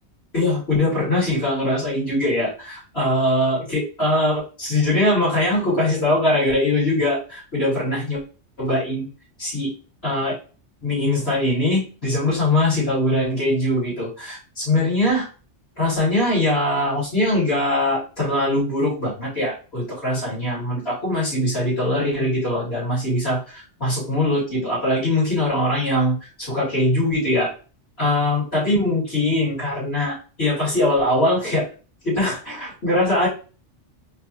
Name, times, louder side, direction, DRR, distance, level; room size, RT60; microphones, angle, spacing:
voice 1, 0.3-8.2 8.6-9.1 9.4-9.7 10.0-10.3 10.8-15.3 15.8-27.5 28.0-31.7 32.0-33.3, left 1 dB, 60° left, -9 dB, 2.8 m, -22 dB
4.2 x 3.0 x 2.9 m, 0.35 s
omnidirectional pair, 1.2 m